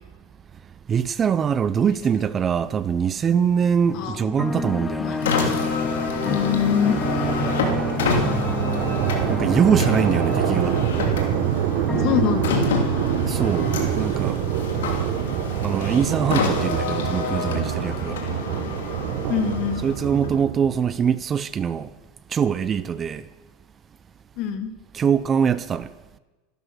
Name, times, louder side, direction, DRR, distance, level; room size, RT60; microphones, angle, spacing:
voice 1, 0.9-5.2 9.3-10.8 13.2-13.7 13.9-14.4 15.6-18.2 19.8-21.9 22.3-23.2 24.9-25.9, right 7 dB, 25° right, 0.5 m, -23 dB
sound 1, 3.9-12.2, left 4 dB, 15° left, 0.7 m, -29 dB
sound 2, 4.6-20.9, right 11 dB, 60° right, 1.2 m, -26 dB
voice 2, 5.0-5.3 6.2-7.0 12.0-12.6 19.3-19.8 24.4-24.7, left 9 dB, 50° left, 2.0 m, -24 dB
Car, 5.1-20.5, left 4 dB, 90° left, 2.9 m, -28 dB
13.5 x 12.5 x 6.2 m
supercardioid pair, 130°, 0 cm